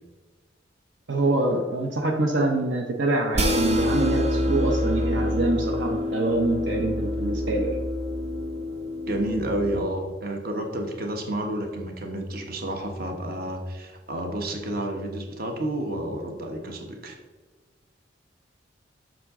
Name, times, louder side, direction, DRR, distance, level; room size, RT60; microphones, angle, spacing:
voice 1, 1.1-7.8, right 2 dB, 75° right, 3 dB, 0.8 m, -25 dB
sound 1, 3.3-9.8, left 1 dB, 35° right, 0.7 m, -26 dB
voice 2, 9.1-17.2, right 1 dB, 50° right, 4 dB, 1.1 m, -30 dB
7.9 x 6.3 x 3.7 m, 1.3 s
head